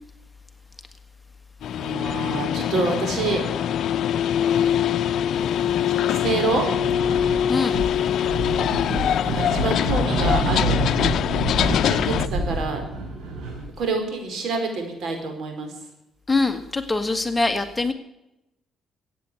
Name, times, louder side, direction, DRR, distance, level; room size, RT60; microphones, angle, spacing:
sound 1, 1.6-12.3, left 9 dB, 70° left, 0.6 m, -23 dB
voice 1, 1.8-3.4 6.0-6.6 9.2-10.8 11.6-12.8 13.8-15.7, right 4 dB, 65° right, 4 dB, 4.7 m, -27 dB
sound 2, 6.7-7.4 7.7-13.8, right 1 dB, 85° right, 6.9 m, -27 dB
voice 2, 7.5-7.8 16.3-17.9, left 3 dB, 15° left, 7 dB, 1.6 m, -23 dB
15.0 x 9.2 x 8.4 m, 0.88 s
cardioid pair, 90°, 0 cm